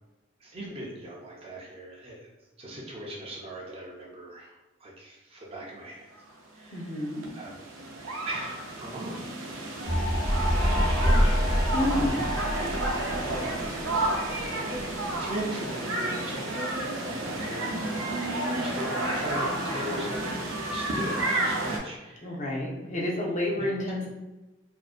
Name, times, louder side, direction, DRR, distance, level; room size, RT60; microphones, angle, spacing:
voice 1, 0.4-2.3 2.6-4.5 4.8-6.1 6.5-6.9 7.3-7.6 8.2-9.3 9.9-10.1 10.5-11.3 12.7-13.7 15.2-17.9 18.5-18.9 19.2-22.4 23.6-23.7, right 1 dB, 30° right, -3 dB, 0.4 m, -39 dB
voice 2, 6.7-7.2 11.7-12.3 22.2-24.1, left 1 dB, 40° left, -3 dB, 0.5 m, -29 dB
sound 1, 6.7-21.8, right 1 dB, 90° right, 0.5 m, -31 dB
sound 2, 9.8-15.3, equal, 80° left, 0.6 m, -27 dB
2.5 x 2.1 x 2.3 m, 1.1 s
head